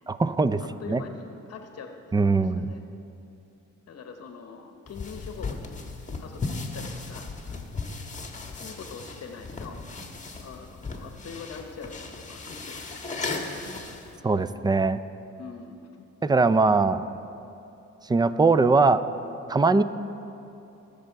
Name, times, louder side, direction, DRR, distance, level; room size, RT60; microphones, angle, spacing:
voice 1, 0.1-0.6 0.9-1.0 2.1-2.7 14.2-15.0 16.2-17.0 18.1-19.0 19.5-19.8, right 3 dB, 15° right, 13 dB, 0.4 m, -21 dB
voice 2, 0.6-2.8 3.9-5.8 6.2-7.3 8.6-9.8 10.4-13.6 15.4-16.1, left 5 dB, 55° left, 5 dB, 1.0 m, -43 dB
sound 1, 4.9-14.2, left 3 dB, 25° left, 1.4 m, -36 dB
20.0 x 6.8 x 4.6 m, 2.8 s
cardioid pair, 90°, 30 cm